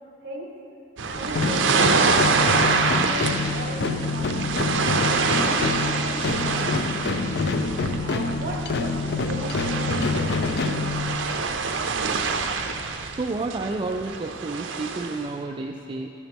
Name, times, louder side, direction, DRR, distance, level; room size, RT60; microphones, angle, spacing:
voice 1, 0.2-0.5 1.1-2.6 3.0-5.0 5.3-7.5 8.0-11.0, right 1 dB, 55° right, -1 dB, 1.8 m, -37 dB
sound 1, 1.0-15.3, right 4 dB, 80° right, 0.6 m, -26 dB
sound 2, 1.3-11.5, left 3 dB, 60° left, 0.5 m, -26 dB
voice 2, 13.2-16.1, right 3 dB, 25° right, 2 dB, 0.4 m, -30 dB
13.0 x 9.8 x 3.5 m, 2.7 s
head